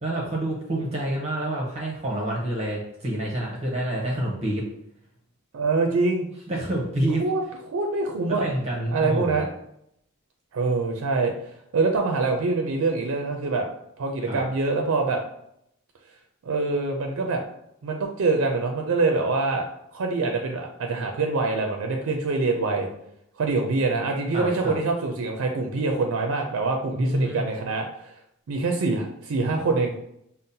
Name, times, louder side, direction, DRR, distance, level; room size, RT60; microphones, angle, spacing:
voice 1, 0.0-4.7 6.5-7.2 8.3-9.4 14.2-14.4 24.3-24.8 27.0-27.5, right 1 dB, 30° right, -3 dB, 0.7 m, -27 dB
voice 2, 5.5-6.3 7.2-7.4 7.7-8.4 8.9-9.5 10.5-11.3 11.7-13.7 14.0-15.2 16.5-17.4 17.8-19.7 19.9-22.9 23.4-28.1 28.5-29.9, right 3 dB, 65° right, 2 dB, 0.4 m, -25 dB
5.3 x 2.0 x 2.7 m, 0.76 s
head